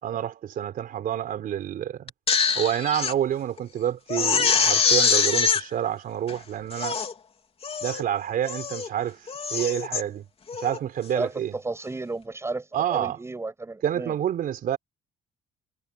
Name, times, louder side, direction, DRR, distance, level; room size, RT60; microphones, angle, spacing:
voice 1, 0.0-2.1 2.5-7.0 7.8-10.3 10.6-11.5 12.7-13.2 13.8-14.8, right 10 dB, 60° right, 4.0 m, -28 dB
Crying sobbing, 2.1-3.1 3.6-3.7 4.1-5.6 6.3-6.4 6.7-7.1 7.6-8.0 8.4-8.9 9.3-10.0 10.5-10.8, left 6 dB, 35° left, 3.2 m, -24 dB
voice 2, 11.1-14.1, right 3 dB, 15° right, 6.5 m, -33 dB
cardioid pair, 110°, 17 cm